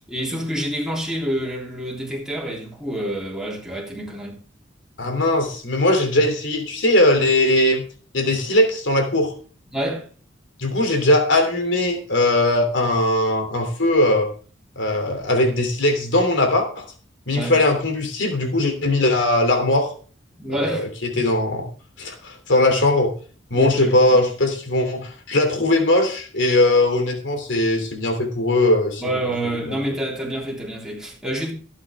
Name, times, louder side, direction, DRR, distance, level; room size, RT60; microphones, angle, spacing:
voice 1, 0.1-4.4 9.7-10.0 17.3-17.6 20.4-20.9 23.5-24.2 29.0-31.5, right 1 dB, 5° right, 3.4 m, -28 dB
voice 2, 5.0-7.8 8.1-9.3 10.6-14.3 14.8-16.8 17.3-19.9 20.5-21.7 22.0-23.1 23.5-29.2 29.7-29.8, left 1 dB, 70° left, 3.2 m, -19 dB
17.0 x 8.9 x 3.6 m
head